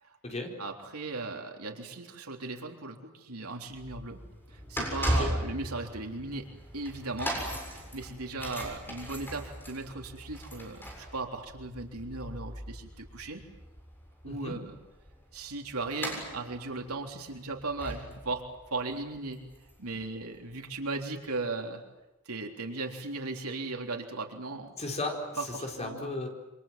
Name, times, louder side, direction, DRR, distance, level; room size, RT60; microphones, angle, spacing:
voice 1, 0.6-4.2 4.5-6.5 6.7-13.4 14.2-14.8 15.3-18.4 18.7-19.4 19.8-21.8 22.3-24.7 25.4-26.2, right 3 dB, 85° right, 2 dB, 3.6 m, -37 dB
sound 1, 3.7-20.7 21.3-21.4, equal, 10° left, 7.3 m, -38 dB
voice 2, 14.3-14.6 24.8-26.3, left 2 dB, 30° left, 2 dB, 4.6 m, -35 dB
27.5 x 26.0 x 7.6 m, 0.99 s
head